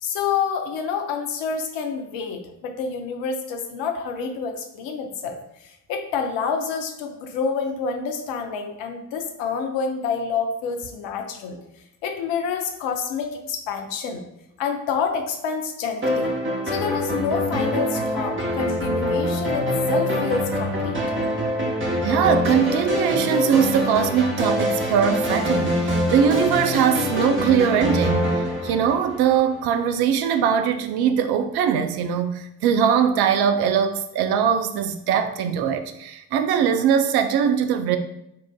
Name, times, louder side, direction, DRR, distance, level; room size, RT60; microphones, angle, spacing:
voice 1, 0.0-11.6 12.0-14.2 14.6-16.3 16.6-21.0, left 5 dB, 65° left, 4 dB, 0.7 m, -28 dB
sound 1, 16.0-29.6, left 1 dB, 25° right, 1.1 m, -24 dB
voice 2, 22.0-38.0, right 8 dB, 55° right, 8 dB, 0.5 m, -21 dB
5.8 x 2.5 x 2.3 m, 0.82 s
figure-of-eight pair, 45°, 48 cm